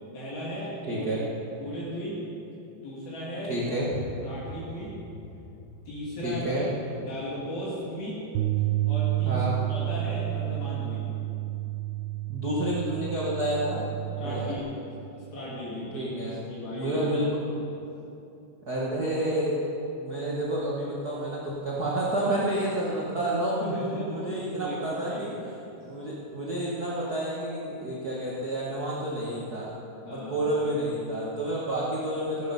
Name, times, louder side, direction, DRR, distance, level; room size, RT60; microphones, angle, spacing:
voice 1, 0.1-1.1 1.6-2.2 2.8-3.5 4.2-4.9 5.9-6.7 7.0-8.2 8.9-11.1 14.2-14.7 15.1-17.0 20.1-20.2 23.6-25.2 25.5-25.7 30.0-30.5, equal, 65° left, -7 dB, 4.3 m, -36 dB
voice 2, 0.9-1.2 3.5-3.9 6.2-6.7 9.2-9.6 12.3-13.9 14.2-14.5 15.9-16.4 16.7-17.3 18.7-19.7 20.0-23.7 24.1-25.3 25.8-29.8 30.1-32.5, right 1 dB, 55° right, -6 dB, 1.0 m, -29 dB
sound 1, 3.9-9.5, left 2 dB, 90° left, 3.3 m, -45 dB
Bass guitar, 8.4-14.6, right 17 dB, 90° right, 2.8 m, -30 dB
15.5 x 12.5 x 5.5 m, 2.8 s
omnidirectional pair, 4.7 m